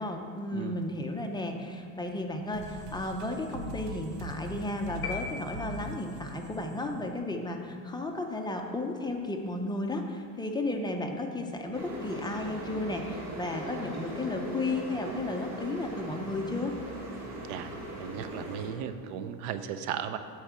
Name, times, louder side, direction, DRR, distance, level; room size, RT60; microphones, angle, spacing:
voice 1, 0.0-16.7, left 2 dB, 10° left, 2 dB, 0.6 m, -34 dB
sound 1, 2.5-7.8, right 2 dB, 60° right, 1.0 m, -42 dB
sound 2, 5.0-6.3, left 5 dB, 30° left, 1.2 m, -38 dB
sound 3, 11.7-18.7, right 1 dB, 40° right, 1.8 m, -39 dB
voice 2, 18.0-20.2, right 9 dB, 90° right, 10 dB, 0.7 m, -36 dB
8.5 x 4.7 x 7.4 m, 2.2 s
cardioid pair, 135°, 41 cm